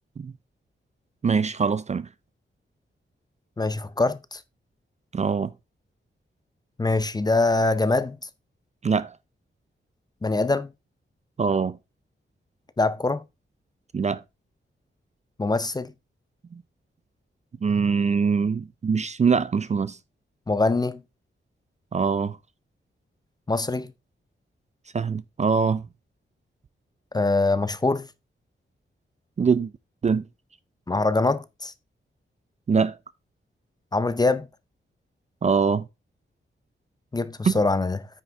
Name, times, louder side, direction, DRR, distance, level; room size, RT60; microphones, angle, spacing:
voice 1, 1.2-2.1 5.1-5.5 8.8-9.1 11.4-11.8 13.9-14.2 16.5-16.6 17.6-20.0 21.9-22.4 24.9-25.8 29.4-29.7 30.0-30.2 32.7-33.0 35.4-35.8 37.4-37.5, right 5 dB, 35° right, 0.4 m, -23 dB
voice 2, 3.6-4.4 6.8-8.2 10.2-10.7 12.8-13.2 15.4-15.9 20.5-21.0 23.5-23.9 27.1-28.1 30.9-31.7 33.9-34.5 37.1-38.1, left 3 dB, 20° left, 0.5 m, -23 dB
9.2 x 6.0 x 3.5 m
wide cardioid pair, 155°, 21 cm